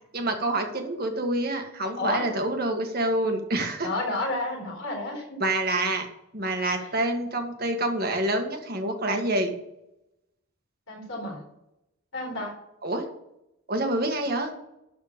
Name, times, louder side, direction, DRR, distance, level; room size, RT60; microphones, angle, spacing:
voice 1, 0.1-3.9 5.4-6.1 6.3-9.5 12.8-13.0 13.7-14.5, right 1 dB, 45° right, 4 dB, 1.7 m, -27 dB
voice 2, 1.9-2.3 3.8-5.4 6.8-6.9 10.9-11.4 12.1-12.5, left 2 dB, 65° left, -2 dB, 4.3 m, -31 dB
12.5 x 4.4 x 7.3 m, 0.84 s
head